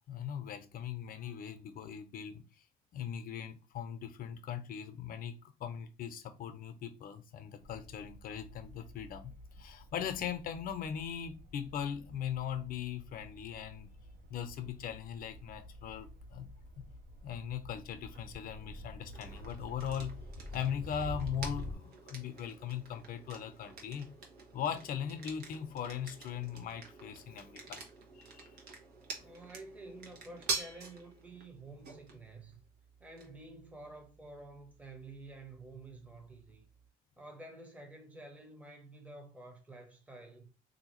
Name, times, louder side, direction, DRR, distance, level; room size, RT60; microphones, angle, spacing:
voice 1, 0.1-2.4 2.9-5.3 5.6-13.9 14.3-16.5 16.8-16.9 17.2-20.2 20.5-24.1 24.5-27.8 28.1-28.5 29.1-29.2, left 8 dB, 60° left, 0.7 m, -39 dB
sound 1, 7.6-21.7, equal, 60° right, 0.8 m, -48 dB
sound 2, 19.1-36.9, right 4 dB, 75° right, 1.1 m, -47 dB
voice 2, 29.2-32.6 33.0-36.6 37.2-40.5, right 2 dB, 10° right, 0.8 m, -50 dB
3.6 x 2.7 x 3.0 m
cardioid pair, 110°, 17 cm